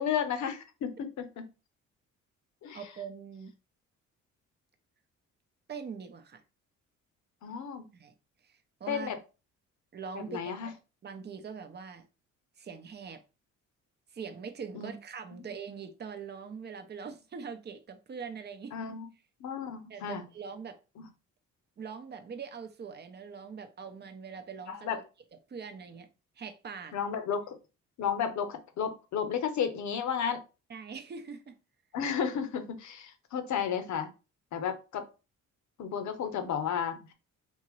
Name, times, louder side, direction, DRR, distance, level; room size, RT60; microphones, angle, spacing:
voice 1, 0.0-1.5 2.6-2.8 7.4-7.8 8.9-9.2 10.1-10.7 14.7-14.9 18.7-19.1 19.4-20.2 21.0-21.1 24.7-25.0 26.9-27.6 28.0-30.4 31.9-34.1 34.5-35.1 35.8-37.1, left 7 dB, 70° left, 0.8 m, -33 dB
voice 2, 2.7-3.5 5.7-6.4 7.9-8.1 8.4-9.2 9.9-10.7 11.0-12.0 12.6-13.2 14.1-18.7 19.9-20.8 21.8-25.0 25.5-26.1 26.4-26.9 30.7-31.6, right 6 dB, 35° right, 0.7 m, -42 dB
3.6 x 2.8 x 3.1 m
cardioid pair, 90°, 30 cm